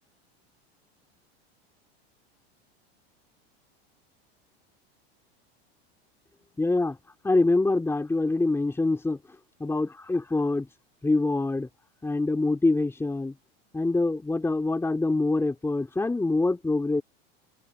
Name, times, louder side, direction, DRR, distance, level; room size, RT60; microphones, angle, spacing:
voice 1, 6.6-7.0 7.2-9.2 9.6-10.7 11.0-11.7 12.0-13.3 13.7-17.0, left 2 dB, 10° left, 2.8 m, -25 dB
open air
supercardioid pair, 125°, 32 cm